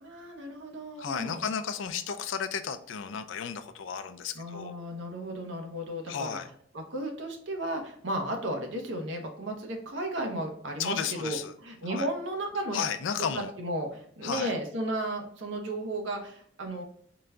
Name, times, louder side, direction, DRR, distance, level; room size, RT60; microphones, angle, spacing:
voice 1, 0.0-1.4 4.3-6.4 6.7-12.8 13.2-16.8, right 1 dB, 75° right, 3 dB, 0.8 m, -34 dB
voice 2, 1.0-4.7 6.1-6.5 10.8-11.5 11.8-12.1 12.7-13.5 14.2-14.5, left 7 dB, 75° left, 10 dB, 0.4 m, -33 dB
3.8 x 2.2 x 3.5 m, 0.63 s
head